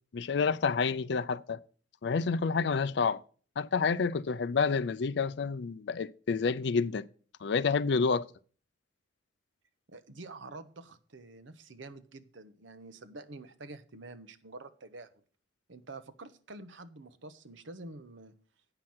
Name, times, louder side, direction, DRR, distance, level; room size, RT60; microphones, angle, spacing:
voice 1, 0.1-1.6 2.0-3.2 3.6-7.0 7.4-8.3, left 5 dB, 60° left, 0.4 m, -29 dB
voice 2, 9.9-15.1 15.7-18.3, right 2 dB, 75° right, 0.9 m, -47 dB
8.9 x 5.8 x 7.7 m
head